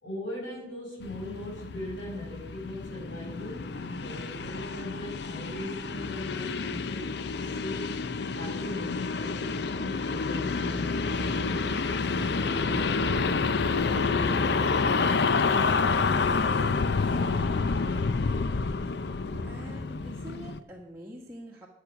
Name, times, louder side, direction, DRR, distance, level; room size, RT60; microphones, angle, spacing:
voice 1, 0.0-7.1 7.4-8.0 8.3-15.4, left 1 dB, 85° left, -3 dB, 5.7 m, -40 dB
sound 1, 1.0-20.6, left 4 dB, 60° left, 0.6 m, -28 dB
voice 2, 19.3-21.7, equal, 15° right, -2 dB, 1.4 m, -44 dB
12.5 x 8.5 x 5.8 m, 0.84 s
head